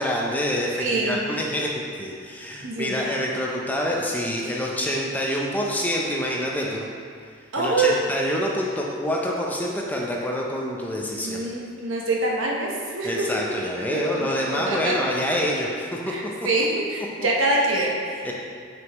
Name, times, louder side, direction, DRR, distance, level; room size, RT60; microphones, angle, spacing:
voice 1, 0.0-6.9 7.6-11.4 13.0-16.1 17.2-17.3 18.2-18.3, equal, 10° left, -2 dB, 0.5 m, -26 dB
voice 2, 0.8-1.2 2.6-2.9 7.5-8.0 11.2-13.4 13.9-15.0 16.1-18.3, right 2 dB, 75° right, -2 dB, 0.9 m, -25 dB
6.2 x 5.2 x 3.0 m, 2.2 s
head